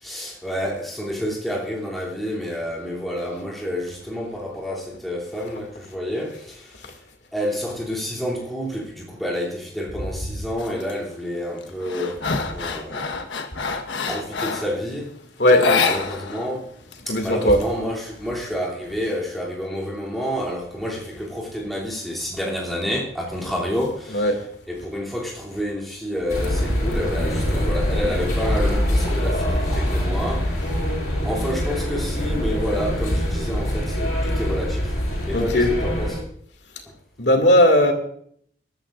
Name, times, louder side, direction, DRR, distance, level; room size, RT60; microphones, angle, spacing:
voice 1, 0.0-6.9 7.3-12.3 12.5-13.0 14.1-15.1 15.5-16.7 17.1-24.3 24.7-30.6 31.2-35.0 35.3-36.2, equal, ahead, 2.9 m, -29 dB
sound 1, 10.6-10.9 11.4-14.8 15.5-16.5 16.7-16.8 17.2-18.2, left 4 dB, 85° left, 1.3 m, -26 dB
voice 2, 17.1-17.6 24.1-24.4 35.3-35.7 37.2-37.9, left 1 dB, 65° left, 2.4 m, -16 dB
sound 2, 26.3-36.2, equal, 45° left, 7.8 m, -24 dB
22.0 x 13.0 x 2.5 m
head